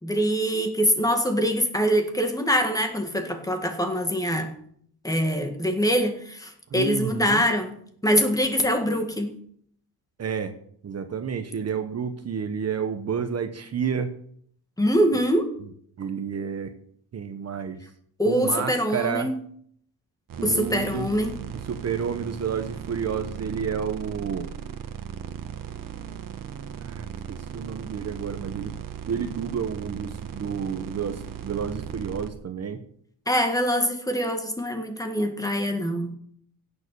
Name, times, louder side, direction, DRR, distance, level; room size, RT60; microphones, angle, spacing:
voice 1, 0.0-4.5 5.0-7.8 8.0-9.3 14.8-15.5 18.2-19.4 20.4-21.4 33.3-36.1, equal, 10° left, 5 dB, 1.8 m, -24 dB
voice 2, 6.7-7.4 10.2-10.5 10.8-14.1 15.6-15.7 16.0-16.7 17.1-17.8 18.3-19.3 20.4-21.1 21.7-24.5 26.8-28.8 29.1-32.8, right 7 dB, 40° right, 8 dB, 1.0 m, -30 dB
sound 1, 20.3-32.3, right 8 dB, 55° right, 1.5 m, -37 dB
16.5 x 7.2 x 6.8 m, 0.64 s
wide cardioid pair, 165°, 39 cm